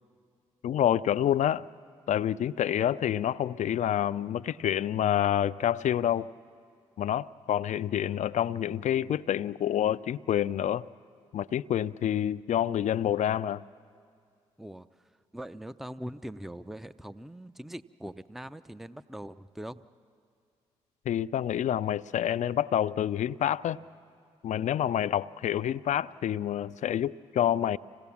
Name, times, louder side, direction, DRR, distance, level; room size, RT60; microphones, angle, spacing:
voice 1, 0.6-1.6 2.1-6.3 7.0-10.8 11.3-13.6 21.1-23.8 24.4-27.8, left 10 dB, 60° left, 16 dB, 0.4 m, -28 dB
voice 2, 15.3-19.8, right 1 dB, ahead, 13 dB, 0.6 m, -41 dB
26.0 x 17.5 x 7.2 m, 2.2 s
hypercardioid pair, 45°, 14 cm